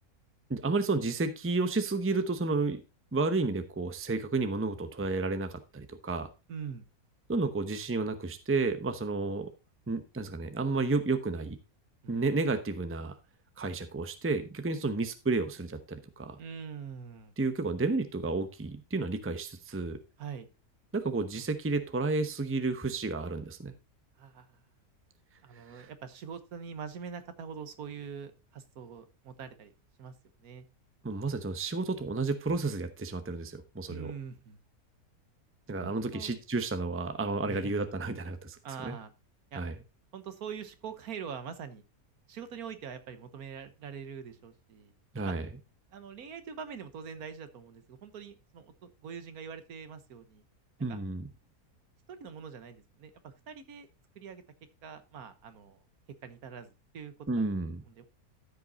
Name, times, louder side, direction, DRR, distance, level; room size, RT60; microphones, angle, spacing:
voice 1, 0.5-2.8 3.1-6.3 7.3-9.5 9.9-11.6 12.1-13.1 13.6-16.4 17.4-20.0 20.9-23.7 25.7-25.9 31.0-34.1 35.7-38.9 39.5-39.7 45.1-45.4 50.8-51.3 57.3-57.8, right 3 dB, 10° right, 9 dB, 0.7 m, -31 dB
voice 2, 6.5-6.9 12.0-12.2 16.4-17.3 20.2-20.5 24.2-24.6 25.4-29.7 30.0-30.1 30.4-30.6 33.9-34.6 35.8-36.3 37.4-37.7 38.6-39.1 39.5-39.6 40.1-41.8 42.3-44.9 45.2-45.3 45.9-50.4 50.9-51.0 52.1-53.9 54.1-54.4 54.8-55.8 56.2-57.4 57.9-58.1, right 7 dB, 75° right, 11 dB, 1.5 m, -43 dB
13.5 x 5.3 x 4.1 m, 0.29 s
omnidirectional pair, 1.6 m